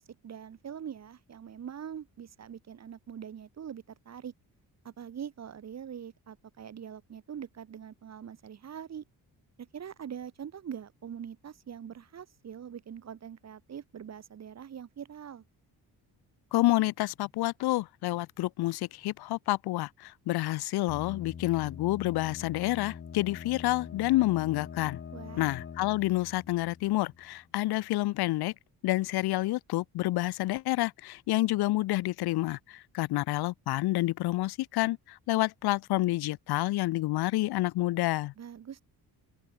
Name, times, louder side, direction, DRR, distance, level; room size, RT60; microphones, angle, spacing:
voice 1, 0.0-4.3 4.8-9.0 9.6-15.4 25.1-25.5 38.4-38.8, right 8 dB, 45° right, 2.1 m, -43 dB
voice 2, 16.5-25.0 25.4-28.5 28.8-38.3, left 17 dB, 90° left, 0.6 m, -29 dB
sound 1, 20.9-27.5, left 7 dB, 30° left, 1.5 m, -44 dB
open air
cardioid pair, 160°, 37 cm